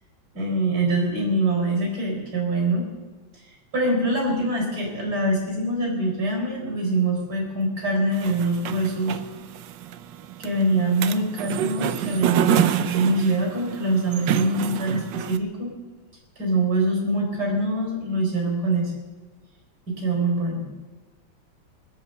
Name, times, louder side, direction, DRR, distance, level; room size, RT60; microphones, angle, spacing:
voice 1, 0.3-2.9 3.3-9.2 10.4-15.7 16.4-18.9 19.9-20.7, right 2 dB, 50° right, -1 dB, 4.6 m, -24 dB
sound 1, 8.1-15.4, right 11 dB, 70° right, 1.3 m, -27 dB
24.5 x 8.5 x 6.7 m, 1.3 s
omnidirectional pair, 2.2 m